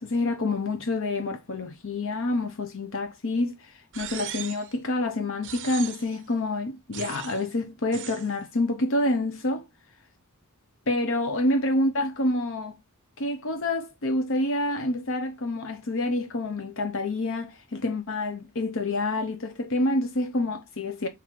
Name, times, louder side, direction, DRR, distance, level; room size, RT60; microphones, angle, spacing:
voice 1, 0.0-9.6 10.9-12.8 13.2-21.1, left 2 dB, 60° left, 0.9 m, -27 dB
sound 1, 3.9-4.7 5.4-6.2 6.9-7.5 7.9-8.3, right 11 dB, 55° right, 0.9 m, -38 dB
6.0 x 4.7 x 4.6 m
head